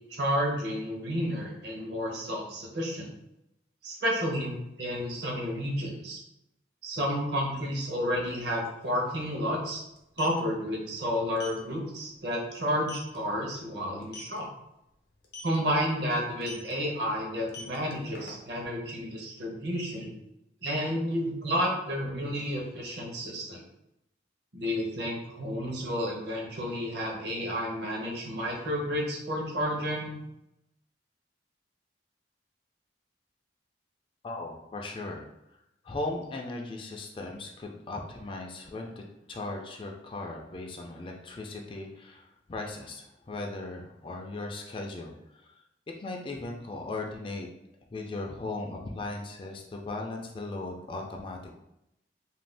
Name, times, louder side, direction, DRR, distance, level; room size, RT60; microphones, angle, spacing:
voice 1, 0.1-3.1 3.8-6.2 6.8-9.8 10.2-14.5 15.4-20.1 20.6-23.6 24.5-30.2, equal, 65° right, -1 dB, 0.8 m, -31 dB
sound 1, 8.3-8.4 8.7-8.9 9.9-10.4 11.4-11.6 12.0-12.2 12.5-12.6 12.9-13.2 14.0-14.4 15.2-15.6 16.4-16.7 17.4-18.7, left 3 dB, 65° left, 0.6 m, -43 dB
voice 2, 34.2-35.3 35.8-45.5 46.0-47.5 47.9-51.5, left 2 dB, 30° left, 1 dB, 0.3 m, -38 dB
2.5 x 2.2 x 3.3 m, 0.85 s
head